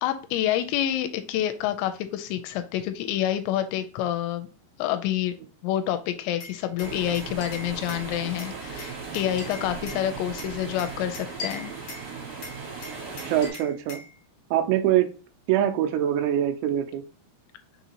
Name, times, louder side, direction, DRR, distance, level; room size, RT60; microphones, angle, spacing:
voice 1, 0.0-4.5 4.8-5.4 5.6-11.7, left 11 dB, 85° left, 8 dB, 2.8 m, -28 dB
Glass, 6.4-8.1 8.4-10.0 10.4-12.1 12.4-14.1, left 3 dB, 50° left, 2.3 m, -40 dB
sound 1, 6.8-13.5, right 5 dB, 55° right, 2.9 m, -37 dB
voice 2, 13.3-14.0 14.5-15.1 15.5-17.0, right 11 dB, 85° right, 6 dB, 2.7 m, -23 dB
6.4 x 2.8 x 2.8 m, 0.35 s
omnidirectional pair, 5.0 m